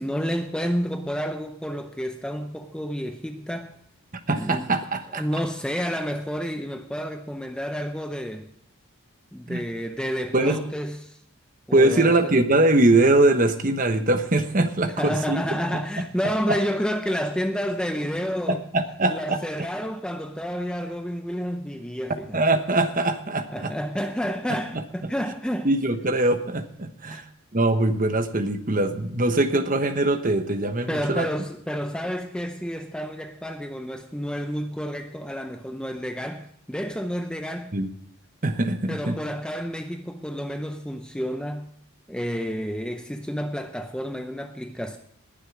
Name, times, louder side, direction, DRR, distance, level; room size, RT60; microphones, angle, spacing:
voice 1, 0.0-3.7 4.3-4.7 5.1-8.5 9.3-11.2 11.7-12.3 15.0-18.6 19.1-22.4 23.5-25.7 27.1-27.2 30.9-37.7 38.9-41.7 42.1-45.0, equal, 5° left, 0.6 m, -30 dB
voice 2, 4.3-5.2 9.5-9.6 10.3-10.6 11.7-15.4 15.7-15.8 16.5-16.6 18.5-19.4 22.3-23.7 24.5-24.8 25.6-27.2 27.5-31.3 37.7-37.9 38.4-39.2, right 2 dB, 35° right, 1.1 m, -22 dB
20.0 x 7.5 x 4.8 m
head